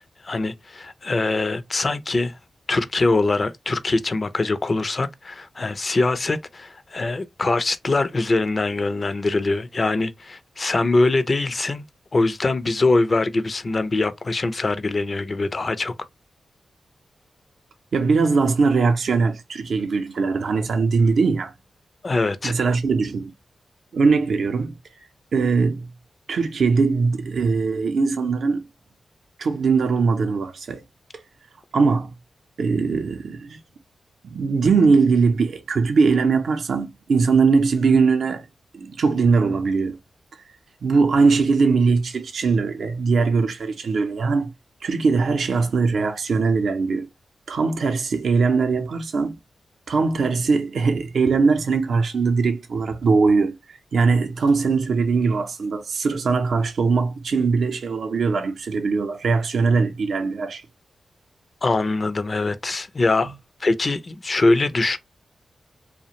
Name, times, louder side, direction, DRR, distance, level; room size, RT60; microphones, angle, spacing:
voice 1, 0.2-2.4 2.7-11.8 12.1-15.9 22.0-22.5 61.6-63.3 63.6-65.0, left 2 dB, 45° left, 0.4 m, -23 dB
voice 2, 17.9-21.5 22.4-23.3 23.9-24.8 25.3-25.9 26.3-28.6 29.4-30.8 31.7-32.1 32.6-33.6 34.2-38.5 38.7-40.0 40.8-44.5 44.8-47.1 47.5-49.4 49.9-53.5 53.9-60.6, right 4 dB, 75° right, 0.5 m, -20 dB
2.4 x 2.1 x 2.8 m
supercardioid pair, 40°, 0 cm